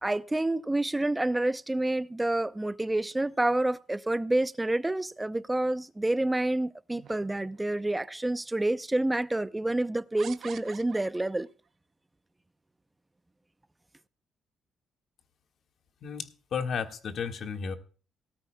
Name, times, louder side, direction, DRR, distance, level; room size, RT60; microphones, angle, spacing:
voice 1, 0.0-11.5, right 1 dB, 15° right, 0.6 m, -28 dB
sound 1, 6.9-7.8 8.6-8.7 10.2-11.5, right 8 dB, 60° right, 0.7 m, -47 dB
voice 2, 16.0-17.8, left 6 dB, 60° left, 1.7 m, -33 dB
18.5 x 13.0 x 2.2 m
cardioid pair, 90°, 0 cm